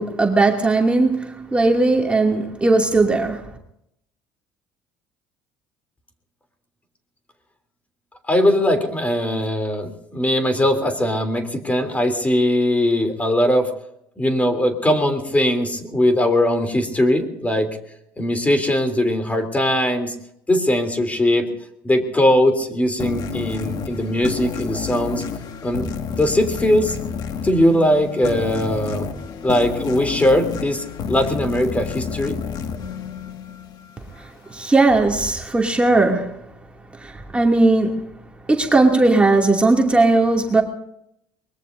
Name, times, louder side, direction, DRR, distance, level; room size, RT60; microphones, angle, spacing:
voice 1, 0.0-3.5 34.2-36.4 37.0-38.0 38.5-40.6, right 2 dB, 15° right, 0 dB, 2.6 m, -18 dB
voice 2, 8.3-13.7 14.2-17.8 18.2-20.1 20.5-21.5 21.8-25.2 25.6-27.0 27.4-29.1 29.4-32.4, left 1 dB, 15° left, 6 dB, 3.3 m, -20 dB
sound 1, 23.0-34.2, left 6 dB, 55° left, 2.0 m, -30 dB
23.5 x 21.5 x 2.7 m, 0.76 s
supercardioid pair, 75°, 8 cm